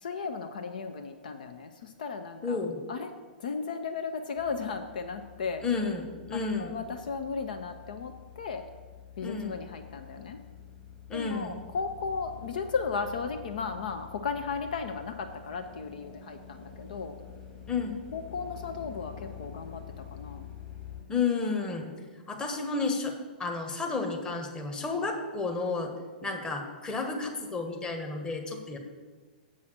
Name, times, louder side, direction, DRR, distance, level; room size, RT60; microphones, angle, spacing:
voice 1, 0.0-3.1 3.4-5.6 6.3-8.6 9.2-10.4 11.1-17.2 18.1-20.5 22.0-22.2, left 5 dB, 60° left, 7 dB, 0.6 m, -35 dB
voice 2, 2.4-2.8 5.6-6.8 9.2-9.6 11.1-11.6 17.7-18.0 21.1-21.9 22.3-25.9 26.2-28.8, left 4 dB, 15° left, 2 dB, 1.2 m, -31 dB
sound 1, 4.3-21.0, left 8 dB, 30° left, 2.4 m, -47 dB
7.4 x 5.6 x 6.4 m, 1.4 s
figure-of-eight pair, 105°, 5 cm